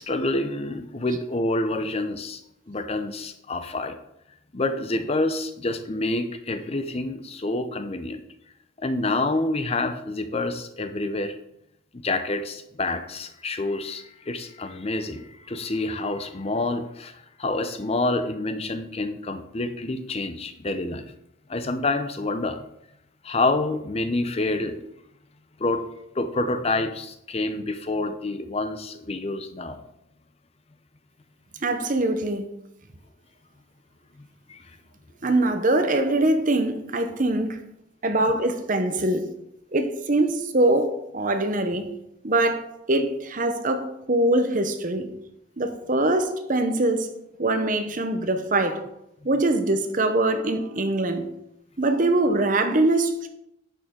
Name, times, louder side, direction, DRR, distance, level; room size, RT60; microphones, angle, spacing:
voice 1, 0.0-2.4 2.7-4.0 4.5-8.2 8.8-11.4 12.0-21.1 21.5-22.6 23.2-24.9 25.6-25.8 26.1-29.8 34.5-34.7, left 2 dB, 30° left, 0.5 m, -27 dB
voice 2, 31.6-32.5 35.2-37.6 38.0-39.3 39.7-41.9 42.2-45.1 45.6-47.1 47.4-48.8 49.2-51.3 51.8-53.3, right 2 dB, 40° right, 0.8 m, -23 dB
10.5 x 6.4 x 3.7 m
head